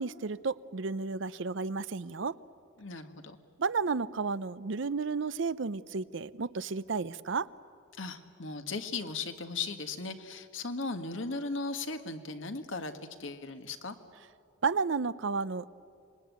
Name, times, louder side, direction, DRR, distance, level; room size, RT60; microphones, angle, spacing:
voice 1, 0.0-2.4 3.6-7.5 14.6-15.7, right 4 dB, 65° right, 16 dB, 0.6 m, -32 dB
voice 2, 2.8-3.4 8.0-13.9, left 3 dB, 65° left, 7 dB, 1.6 m, -37 dB
26.0 x 21.0 x 9.3 m, 2.3 s
head